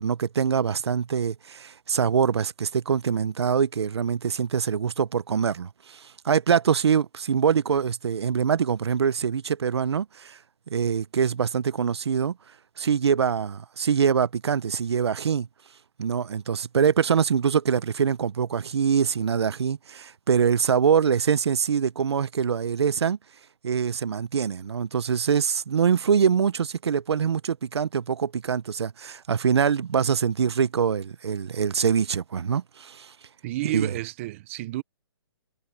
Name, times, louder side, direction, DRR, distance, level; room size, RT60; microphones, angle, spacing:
voice 1, 0.0-10.4 10.7-12.3 12.8-15.5 16.0-23.2 23.6-33.1 33.7-33.9, right 7 dB, 85° right, 0.8 m, -24 dB
voice 2, 33.4-34.8, right 18 dB, 30° right, 0.9 m, -31 dB
hypercardioid pair, 160°, 14 cm